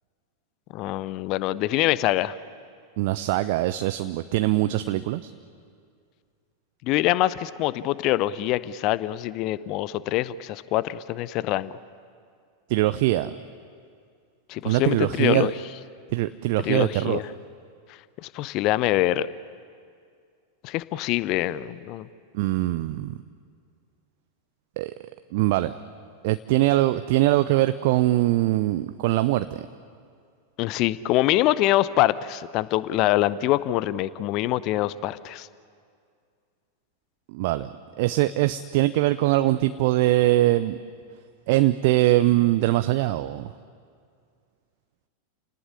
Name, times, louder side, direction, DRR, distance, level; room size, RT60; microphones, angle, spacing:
voice 1, 0.7-2.3 6.8-11.7 14.5-15.5 16.6-17.2 18.2-19.3 20.6-22.1 30.6-35.5, left 15 dB, 40° left, 18 dB, 0.7 m, -24 dB
voice 2, 3.0-5.3 12.7-13.3 14.6-15.5 16.1-17.2 22.3-23.2 24.8-24.9 25.3-25.7 26.2-29.6 37.3-37.7 38.0-40.8 41.5-43.5, right 16 dB, 50° right, 12 dB, 0.6 m, -22 dB
29.0 x 18.5 x 10.0 m, 2.2 s
figure-of-eight pair, 90°, 0 cm